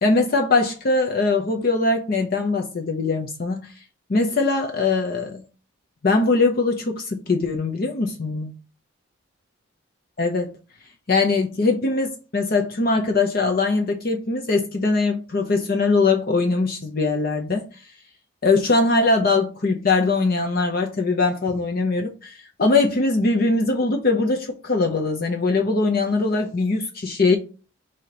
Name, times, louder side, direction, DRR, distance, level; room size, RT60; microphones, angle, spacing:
voice 1, 0.0-3.7 4.1-5.4 6.0-8.5 10.2-10.5 11.1-17.6 18.4-27.4, left 3 dB, 45° left, 0.6 m, -21 dB
5.0 x 2.8 x 3.8 m
head